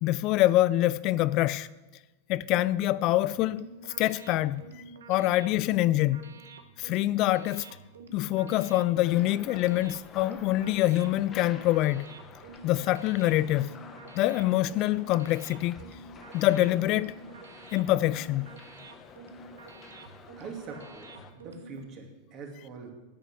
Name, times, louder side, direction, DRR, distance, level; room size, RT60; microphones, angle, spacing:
voice 1, 0.0-1.7 2.3-4.6 5.1-6.3 6.8-7.7 8.1-12.1 12.6-13.7 14.1-15.8 16.3-17.2 17.7-18.5, left 15 dB, 50° left, 0.3 m, -25 dB
sound 1, 3.3-21.8, right 4 dB, 90° right, 1.1 m, -49 dB
sound 2, 8.9-21.3, left 6 dB, 30° left, 1.1 m, -50 dB
voice 2, 20.4-22.9, right 4 dB, 45° right, 2.5 m, -43 dB
9.2 x 8.2 x 6.2 m
hypercardioid pair, 110°, 0 cm